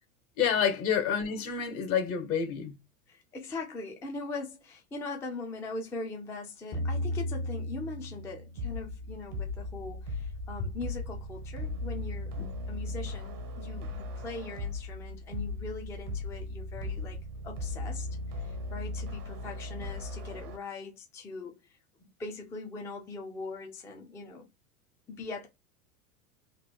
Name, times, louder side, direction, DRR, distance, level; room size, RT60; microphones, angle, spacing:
voice 1, 0.4-2.8 12.4-12.5, left 7 dB, 70° left, 1.4 m, -28 dB
voice 2, 3.1-12.3 12.7-17.2 17.4-18.1 18.3-21.8 22.2-24.5 25.1-25.5, left 3 dB, 5° left, 0.3 m, -41 dB
sound 1, 6.7-9.1, left 1 dB, 50° left, 1.1 m, -34 dB
sound 2, 8.6-20.6, left 2 dB, 85° right, 1.1 m, -37 dB
3.0 x 2.1 x 3.3 m
hypercardioid pair, 110°, 45 cm